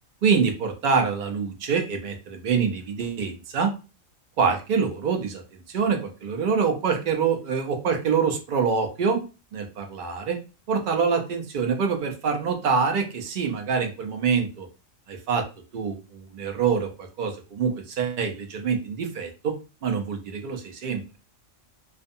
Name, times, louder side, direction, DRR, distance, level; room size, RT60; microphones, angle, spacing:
voice 1, 0.2-3.7 4.4-5.4 5.7-9.2 9.5-10.4 10.7-14.7 15.1-15.4 15.7-19.5 19.8-21.0, right 5 dB, 55° right, 4 dB, 0.5 m, -25 dB
2.5 x 2.1 x 2.6 m, 0.32 s
omnidirectional pair, 1.4 m